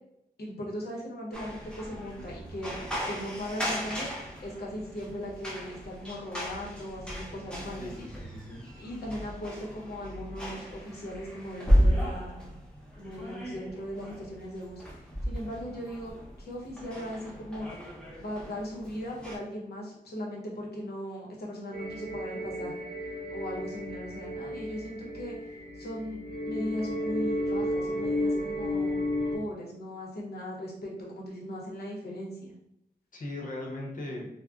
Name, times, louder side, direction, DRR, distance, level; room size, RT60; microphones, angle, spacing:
voice 1, 0.4-8.1 8.8-12.6 13.0-14.8 15.2-16.1 16.4-17.7 18.2-22.9 23.3-26.2 26.5-29.0 29.3-32.5, equal, 85° left, -2 dB, 0.8 m, -38 dB
sound 1, 1.3-19.4, equal, 5° left, 0.6 m, -34 dB
voice 2, 7.8-8.6 33.1-34.3, left 1 dB, 55° left, -2 dB, 0.8 m, -38 dB
sound 2, 21.7-29.4, left 1 dB, 65° right, 0.8 m, -33 dB
3.6 x 2.1 x 2.4 m, 0.79 s
wide cardioid pair, 130°, 16 cm